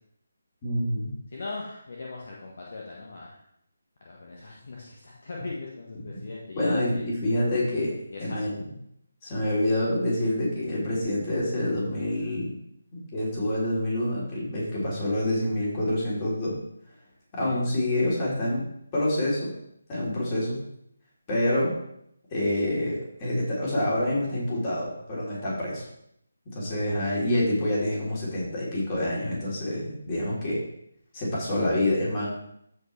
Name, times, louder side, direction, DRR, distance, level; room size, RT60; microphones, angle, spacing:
voice 1, 0.6-1.1 6.1-6.2 6.5-7.9 8.2-8.7 9.2-12.5 12.9-16.6 17.3-18.7 18.9-19.5 19.9-20.6 21.3-21.7 22.3-25.9 26.5-30.6 31.1-32.3, left 1 dB, 25° left, -6 dB, 3.5 m, -27 dB
voice 2, 1.3-3.4 4.0-7.1 8.1-8.6 17.4-17.6 26.9-27.1, left 3 dB, 50° left, -3 dB, 1.4 m, -39 dB
14.5 x 4.9 x 3.4 m, 0.74 s
figure-of-eight pair, 150°, 0 cm